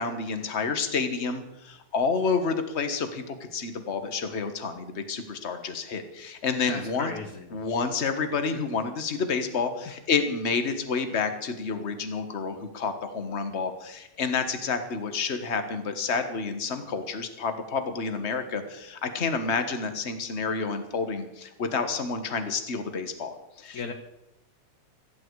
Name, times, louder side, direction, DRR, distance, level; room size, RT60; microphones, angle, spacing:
voice 1, 0.0-7.1 7.5-23.9, left 5 dB, 40° left, 7 dB, 0.9 m, -29 dB
voice 2, 6.7-7.5 23.7-23.9, left 4 dB, 75° left, 4 dB, 0.8 m, -35 dB
18.0 x 14.5 x 4.8 m, 0.90 s
omnidirectional pair, 3.4 m